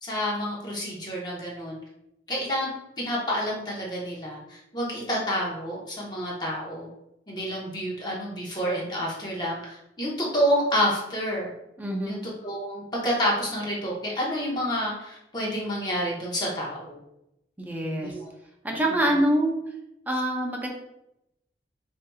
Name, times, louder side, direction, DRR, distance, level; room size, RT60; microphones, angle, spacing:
voice 1, 0.0-1.8 2.3-2.7 3.0-6.9 7.3-11.5 12.0-17.0 18.0-18.3, equal, 25° left, -4 dB, 1.0 m, -29 dB
voice 2, 11.8-12.2 17.6-18.1 18.6-19.5 20.1-20.7, right 1 dB, 10° right, 0 dB, 0.6 m, -25 dB
5.0 x 2.8 x 2.3 m, 0.85 s
head